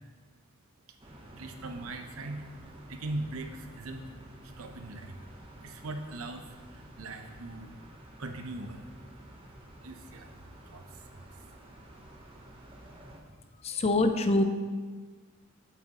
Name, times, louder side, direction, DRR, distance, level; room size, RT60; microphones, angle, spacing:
sound 1, 1.0-13.2, right 1 dB, 25° right, 1.0 m, -51 dB
voice 1, 1.4-4.1 4.4-5.2 5.6-7.7 8.2-8.9 9.8-10.4 10.7-11.4, right 2 dB, 80° right, 5 dB, 0.8 m, -40 dB
voice 2, 13.6-14.4, left 2 dB, 30° left, 7 dB, 0.5 m, -24 dB
9.5 x 7.9 x 3.0 m, 1.5 s
head